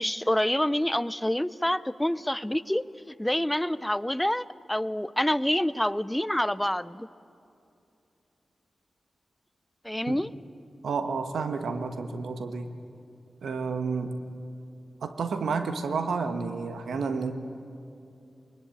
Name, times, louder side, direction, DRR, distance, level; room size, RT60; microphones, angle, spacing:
voice 1, 0.0-7.1 9.8-10.3, left 1 dB, 10° left, 18 dB, 0.5 m, -27 dB
voice 2, 10.8-12.8 13.4-14.3 15.0-17.4, right 4 dB, 90° right, 8 dB, 1.3 m, -30 dB
21.5 x 20.5 x 8.7 m, 2.7 s
cardioid pair, 55°, 0 cm